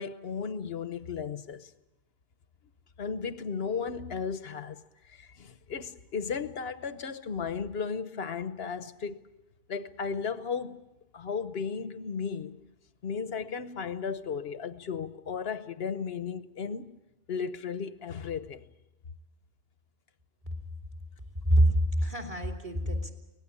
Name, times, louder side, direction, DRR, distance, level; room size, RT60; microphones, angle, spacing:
voice 1, 0.0-1.7 3.0-4.8 5.1-9.2 9.7-10.8 11.1-12.6 13.0-17.0 17.3-18.6, left 6 dB, 65° left, 1.3 m, -35 dB
voice 2, 21.4-23.1, right 1 dB, 30° right, 3.6 m, -25 dB
24.5 x 19.0 x 8.6 m
omnidirectional pair, 1.1 m